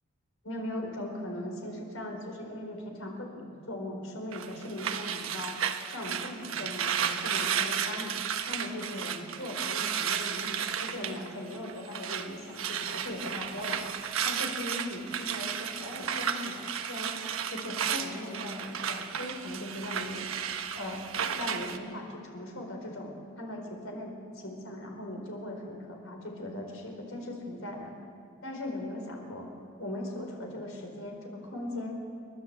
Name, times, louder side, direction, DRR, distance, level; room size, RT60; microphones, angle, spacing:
voice 1, 0.4-5.6 5.9-8.1 8.5-13.8 14.2-17.2 17.5-20.3 20.7-21.0 21.4-27.9 28.4-29.5 29.8-31.9, left 1 dB, 75° left, 2 dB, 4.3 m, -39 dB
sound 1, 4.3-12.3 12.5-21.8, right 8 dB, 75° right, 1.2 m, -33 dB
29.5 x 12.0 x 8.0 m, 2.4 s
head